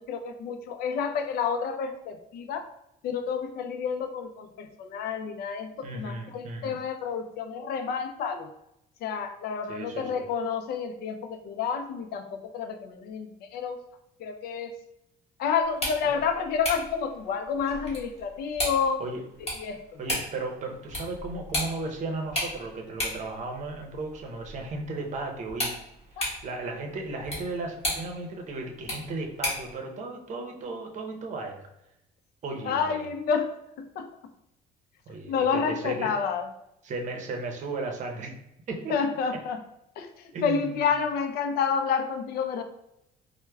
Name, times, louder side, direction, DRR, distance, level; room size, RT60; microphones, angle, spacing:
voice 1, 0.0-2.7 3.0-8.5 9.0-13.3 13.5-13.8 14.2-14.7 15.4-19.0 19.6-19.8 26.2-26.3 32.7-33.5 34.0-34.1 35.3-36.5 38.9-39.6 40.0-40.1 40.4-42.6, left 6 dB, 70° left, 7 dB, 0.4 m, -29 dB
voice 2, 5.8-6.8 9.7-10.2 16.0-16.1 19.0-19.2 20.0-25.7 26.4-31.7 32.4-33.1 35.1-36.1 36.8-38.3 38.7-38.9 40.3-40.8, right 3 dB, 45° right, 2 dB, 0.7 m, -35 dB
sound 1, 15.6-29.7, left 1 dB, 35° left, 1.5 m, -36 dB
4.5 x 2.1 x 2.2 m, 0.83 s
cardioid pair, 110°, 17 cm